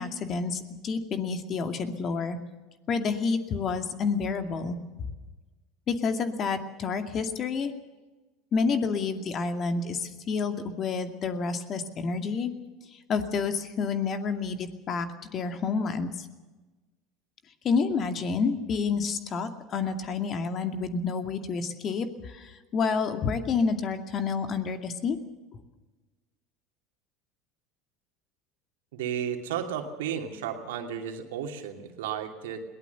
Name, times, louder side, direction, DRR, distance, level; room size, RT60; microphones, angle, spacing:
voice 1, 0.0-2.4 2.9-5.1 5.9-7.7 8.5-12.5 12.9-15.1 15.3-16.3 17.6-25.2, left 5 dB, 40° left, 7 dB, 2.3 m, -29 dB
voice 2, 28.9-32.6, right 8 dB, 75° right, 4 dB, 2.7 m, -33 dB
21.5 x 18.0 x 6.9 m, 1.2 s
hypercardioid pair, 80°, 0 cm